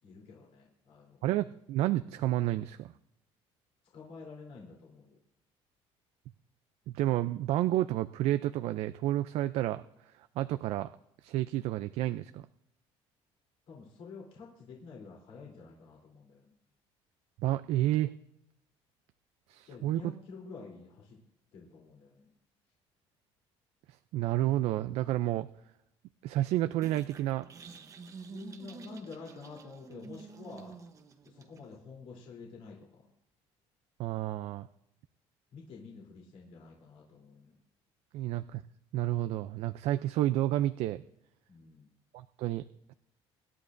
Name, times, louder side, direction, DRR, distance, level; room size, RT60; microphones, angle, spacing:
voice 1, 0.0-1.3 3.9-5.2 13.7-16.5 19.7-21.2 21.5-22.3 28.3-30.8 31.2-33.1 35.5-37.6 41.5-41.9, left 4 dB, 60° left, -2 dB, 3.4 m, -49 dB
voice 2, 1.2-2.9 6.9-9.8 10.1-10.9 11.2-12.4 17.4-18.1 19.5-20.1 24.1-25.5 26.2-27.4 34.0-34.7 38.1-38.6 38.9-41.0 42.1-42.6, right 14 dB, 65° right, 11 dB, 0.4 m, -30 dB
sound 1, 26.8-31.8, right 4 dB, 30° right, 0.9 m, -49 dB
25.5 x 11.0 x 2.6 m, 0.82 s
cardioid pair, 150°, 11 cm